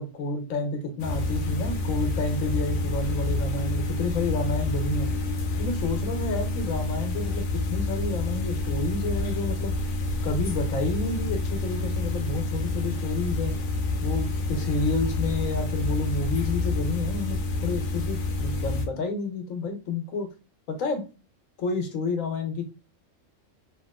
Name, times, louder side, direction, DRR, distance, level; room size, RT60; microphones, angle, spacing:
voice 1, 0.0-5.1 5.6-9.7 10.2-13.5 14.0-20.3 20.7-21.0 21.6-22.6, left 3 dB, 90° left, 5 dB, 1.2 m, -30 dB
sound 1, 1.0-18.9, left 2 dB, 70° left, 0.9 m, -28 dB
2.9 x 2.8 x 2.2 m, 0.32 s
omnidirectional pair, 1.3 m